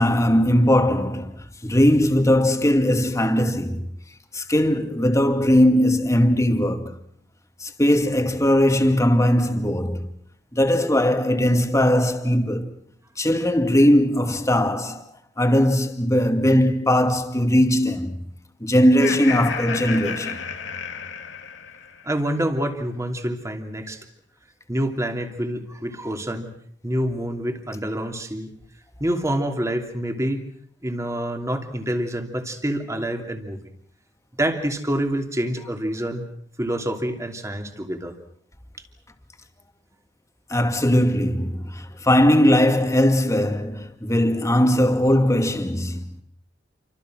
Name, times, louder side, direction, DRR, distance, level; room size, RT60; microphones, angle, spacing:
voice 1, 0.0-3.8 4.3-7.0 7.6-10.1 10.5-12.7 13.2-15.0 15.4-18.2 18.6-20.4 40.5-46.0, equal, 15° left, 2.3 m, -19 dB
Laughter, 18.8-22.1, left 6 dB, 75° left, 2.2 m, -31 dB
voice 2, 22.0-24.0 24.7-26.5 26.8-28.5 29.0-30.5 30.8-33.6 34.4-36.3 36.6-38.1, right 1 dB, 15° right, 2.9 m, -27 dB
29.5 x 25.5 x 6.3 m
head